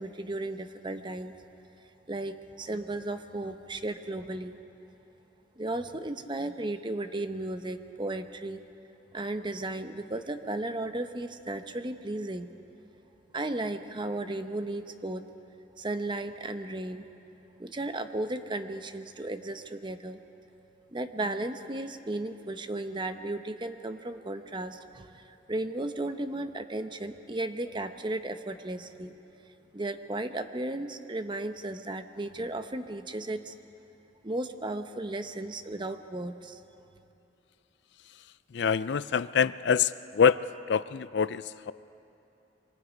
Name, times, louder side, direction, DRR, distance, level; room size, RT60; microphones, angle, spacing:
voice 1, 0.0-1.4 2.1-4.5 5.6-8.6 9.1-12.5 13.3-15.2 15.8-17.1 17.5-20.2 20.9-29.2 29.7-33.5 34.2-36.6, right 2 dB, 25° right, 8 dB, 0.8 m, -35 dB
voice 2, 38.5-40.4 40.7-41.7, left 6 dB, 70° left, 16 dB, 0.4 m, -25 dB
27.0 x 24.0 x 5.2 m, 2.8 s
head